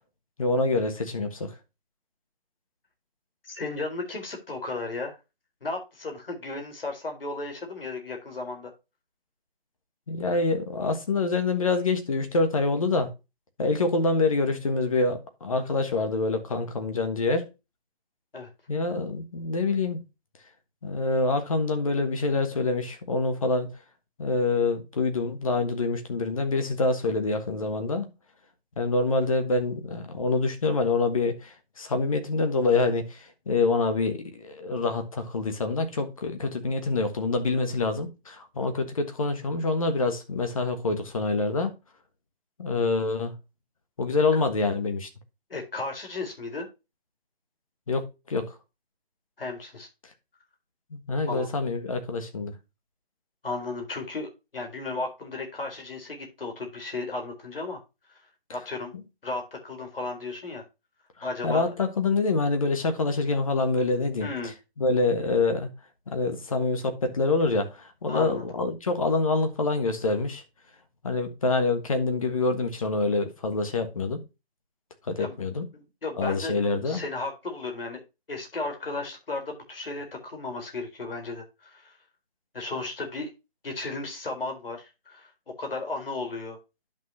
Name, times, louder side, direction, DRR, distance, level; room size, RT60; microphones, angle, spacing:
voice 1, 0.4-1.5 10.1-13.1 13.6-17.5 18.7-20.0 20.8-23.7 24.2-28.1 28.8-41.7 42.6-43.3 44.0-45.1 47.9-48.5 50.9-52.5 61.4-64.5 64.8-65.7 66.1-70.4 71.0-74.2 75.1-75.6 76.2-77.0, left 3 dB, 35° left, 1.4 m, -26 dB
voice 2, 3.4-5.2 5.6-8.7 18.3-18.5 45.5-46.7 49.4-49.9 51.3-51.5 53.4-57.8 58.1-58.2 58.5-58.9 59.2-60.6 61.2-61.6 64.2-64.5 68.1-68.5 75.2-75.4 75.7-76.6 76.8-78.0 78.3-81.9 82.5-83.3 83.6-85.3 85.6-86.6, left 3 dB, 65° left, 4.2 m, -34 dB
10.5 x 6.2 x 2.8 m
hypercardioid pair, 170°, 31 cm